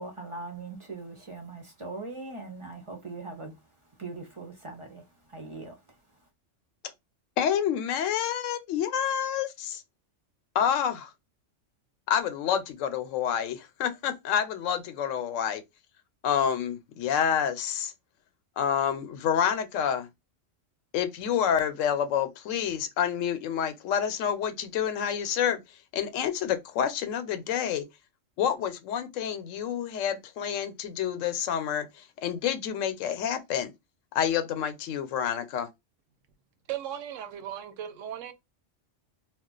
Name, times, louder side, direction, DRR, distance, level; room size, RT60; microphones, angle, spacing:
voice 1, 0.0-3.5 4.0-5.0 5.3-5.8, right 3 dB, 35° right, 0.5 m, -40 dB
voice 2, 7.4-9.8 10.5-11.1 12.1-15.6 16.2-17.9 18.6-20.1 20.9-25.6 25.9-27.8 28.4-33.7 34.1-35.7, left 8 dB, 90° left, 0.9 m, -28 dB
voice 3, 36.7-38.3, right 10 dB, 85° right, 1.0 m, -37 dB
2.4 x 2.2 x 3.7 m
omnidirectional pair, 1.3 m